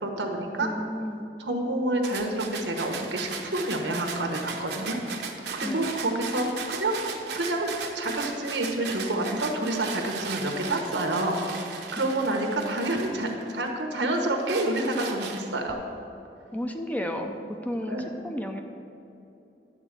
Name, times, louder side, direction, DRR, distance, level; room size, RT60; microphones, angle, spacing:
voice 1, 0.0-0.7 1.4-5.0 5.5-7.0 7.3-15.8 17.9-18.1, right 1 dB, 90° right, 3 dB, 1.2 m, -28 dB
voice 2, 0.6-1.2 5.6-5.9 12.0-12.1 16.5-18.6, equal, 10° left, 4 dB, 0.5 m, -33 dB
sound 1, 2.0-13.7 14.1-15.7, right 5 dB, 70° right, 0.9 m, -37 dB
11.0 x 3.9 x 7.5 m, 2.8 s
head